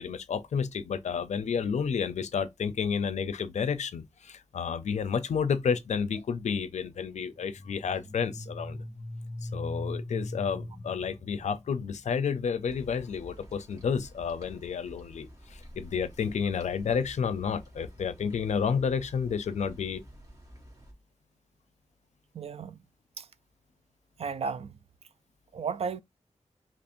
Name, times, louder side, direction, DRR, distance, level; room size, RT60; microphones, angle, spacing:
voice 1, 0.0-8.8 9.4-20.0, left 6 dB, 75° left, 0.4 m, -31 dB
sound 1, 7.3-12.2, left 1 dB, 20° left, 0.6 m, -40 dB
sound 2, 12.7-20.9, equal, 30° right, 1.4 m, -50 dB
voice 2, 22.3-22.8 23.2-23.3 24.2-24.7 25.5-26.0, right 5 dB, 60° right, 0.4 m, -33 dB
2.9 x 2.5 x 4.2 m
wide cardioid pair, 100°, 12 cm